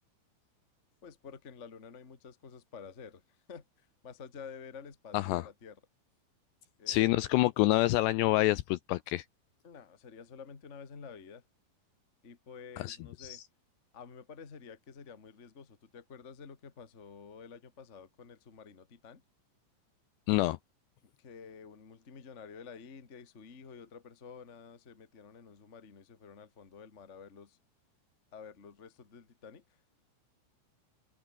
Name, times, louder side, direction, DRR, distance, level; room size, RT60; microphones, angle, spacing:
voice 1, 1.0-3.2 3.5-5.8 6.8-7.3 9.6-11.4 12.2-13.4 13.9-19.2 21.2-27.6 28.3-29.6, left 6 dB, 60° left, 0.7 m, -50 dB
voice 2, 6.9-9.2 12.8-13.4 20.3-20.6, left 18 dB, 90° left, 2.4 m, -27 dB
open air
omnidirectional pair, 5.7 m